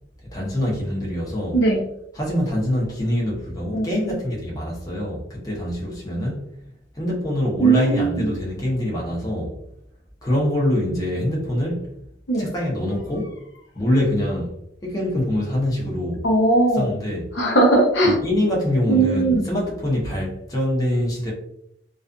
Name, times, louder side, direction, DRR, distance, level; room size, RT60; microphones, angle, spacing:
voice 1, 0.3-1.6 2.1-6.5 6.9-9.5 10.2-11.9 12.4-13.3 13.7-14.5 14.8-16.2 16.7-17.3 18.0-21.3, left 1 dB, 20° left, -4 dB, 0.7 m, -24 dB
voice 2, 3.7-4.1 7.6-8.2 12.3-12.4 16.2-16.9 17.4-18.2 18.9-19.4, right 2 dB, 75° left, -1 dB, 0.7 m, -18 dB
2.4 x 2.3 x 2.4 m, 0.75 s
head